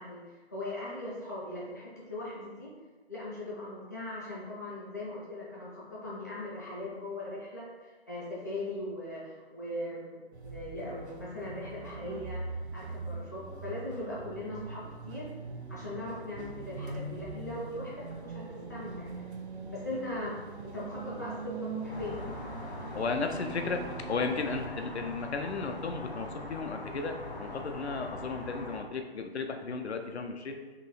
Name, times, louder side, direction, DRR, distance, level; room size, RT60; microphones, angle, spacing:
voice 1, 0.0-2.7 3.1-12.4 12.7-15.2 15.7-19.3 19.7-20.3 20.6-22.2, left 1 dB, 15° left, -8 dB, 0.5 m, -39 dB
sound 1, 10.3-24.7, right 3 dB, 80° right, 0.6 m, -42 dB
sound 2, 21.9-28.8, left 1 dB, 40° left, 0.9 m, -42 dB
voice 2, 23.0-23.8 24.1-30.6, left 4 dB, 80° left, 5 dB, 0.6 m, -34 dB
3.0 x 2.8 x 4.1 m, 1.3 s
figure-of-eight pair, 155°, 33 cm